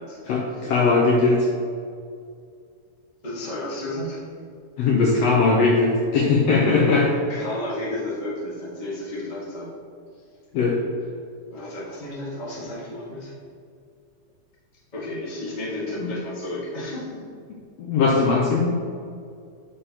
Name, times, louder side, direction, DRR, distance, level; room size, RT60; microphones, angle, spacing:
voice 1, 0.3-1.5 4.8-7.1 10.5-10.8 16.0-16.1 17.8-18.7, left 3 dB, 75° left, -1 dB, 1.6 m, -19 dB
voice 2, 3.2-4.2 7.3-9.7 11.3-13.3 14.9-17.2 18.1-18.2, left 1 dB, 20° left, -6 dB, 1.1 m, -32 dB
8.5 x 6.8 x 2.9 m, 2.3 s
omnidirectional pair, 3.5 m